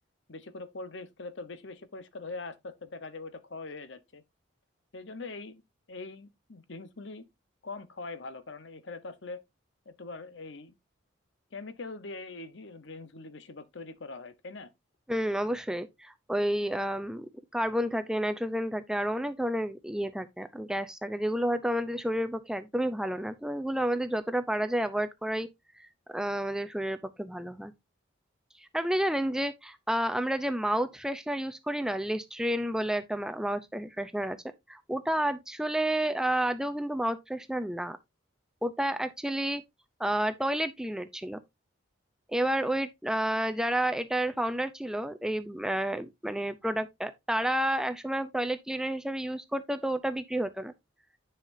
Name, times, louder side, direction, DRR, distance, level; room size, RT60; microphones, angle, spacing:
voice 1, 0.3-4.2 4.9-5.6 5.9-7.2 7.6-9.4 9.9-10.7 11.5-14.7, left 3 dB, 65° left, 0.9 m, -42 dB
voice 2, 15.1-17.3 17.5-25.5 25.8-27.7 28.6-34.4 34.7-38.0 38.6-39.6 40.0-41.4 42.3-50.7, right 1 dB, 5° right, 0.5 m, -30 dB
10.5 x 5.7 x 2.6 m
head